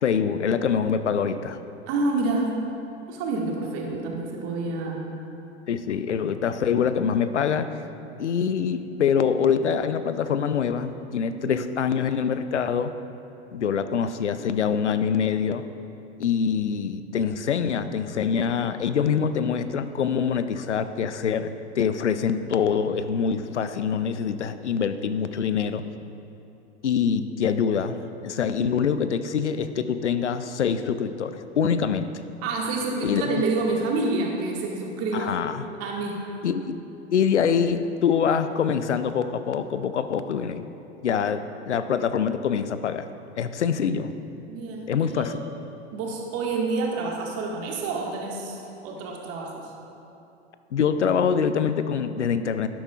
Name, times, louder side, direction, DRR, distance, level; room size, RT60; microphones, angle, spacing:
voice 1, 0.0-1.6 5.7-7.8 8.2-12.9 13.5-15.6 16.2-25.8 26.8-32.1 33.0-33.4 35.1-35.7 36.4-36.8 37.1-40.7 41.0-43.1 43.4-44.1 44.9-45.3 50.7-52.7, left 7 dB, 90° left, 11 dB, 0.5 m, -25 dB
voice 2, 1.9-2.6 3.1-5.0 11.4-11.6 32.4-35.4 35.8-36.2 44.5-45.3 45.9-49.7, right 3 dB, 45° right, -1 dB, 1.8 m, -28 dB
12.0 x 10.0 x 2.4 m, 2.8 s
hypercardioid pair, 90°, 34 cm